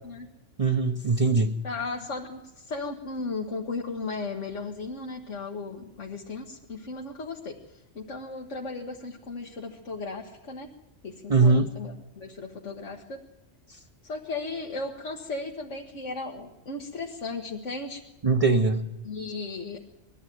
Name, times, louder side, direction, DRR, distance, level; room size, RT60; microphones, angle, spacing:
voice 1, 0.6-1.6 11.3-11.7 13.7-13.8 18.2-18.9, right 3 dB, 35° right, 5 dB, 0.8 m, -21 dB
voice 2, 1.6-10.7 11.0-13.2 14.0-18.0 19.0-19.8, left 3 dB, 85° left, 0 dB, 1.8 m, -36 dB
21.0 x 13.5 x 9.2 m, 0.96 s
omnidirectional pair, 1.2 m